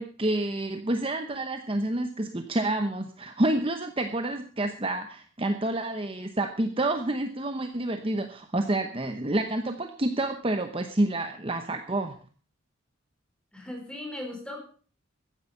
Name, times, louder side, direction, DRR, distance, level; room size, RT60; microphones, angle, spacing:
voice 1, 0.0-12.2, right 1 dB, 25° right, 7 dB, 0.9 m, -28 dB
voice 2, 13.5-14.6, left 1 dB, 5° left, 1 dB, 3.9 m, -38 dB
14.5 x 10.5 x 5.5 m, 0.42 s
head